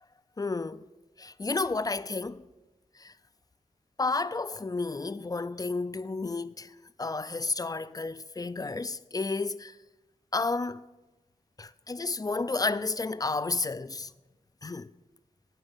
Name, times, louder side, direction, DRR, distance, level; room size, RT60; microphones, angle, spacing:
voice 1, 0.4-0.9 1.2-2.5 3.0-3.1 4.0-6.7 7.0-9.8 10.3-10.8 11.6-14.1 14.6-14.9, left 3 dB, 25° left, 0.3 m, -31 dB
9.3 x 8.0 x 5.6 m
wide cardioid pair, 70°, 15 cm